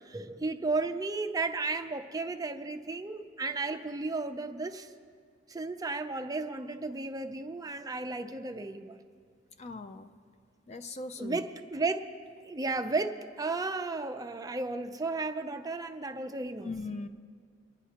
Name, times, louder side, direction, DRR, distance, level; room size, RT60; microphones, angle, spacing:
voice 1, 0.0-4.9 5.5-9.0 11.2-12.1 12.4-16.7, right 3 dB, 20° right, 7 dB, 0.5 m, -34 dB
voice 2, 9.6-10.1 10.7-11.4 16.6-17.1, left 3 dB, 35° left, 10 dB, 0.4 m, -39 dB
27.0 x 10.5 x 2.9 m, 2.1 s
head